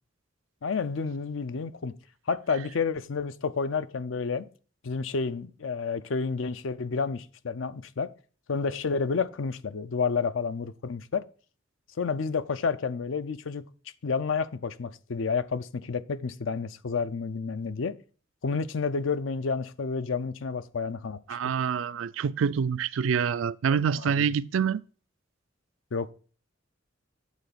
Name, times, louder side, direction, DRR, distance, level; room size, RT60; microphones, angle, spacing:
voice 1, 0.6-1.9 2.3-4.5 4.8-8.1 8.5-11.2 12.0-13.6 14.0-17.9 18.4-21.5 24.0-24.3 25.9-26.1, left 5 dB, 75° left, 0.5 m, -30 dB
voice 2, 21.3-24.8, right 7 dB, 85° right, 0.4 m, -26 dB
8.2 x 4.1 x 6.8 m
head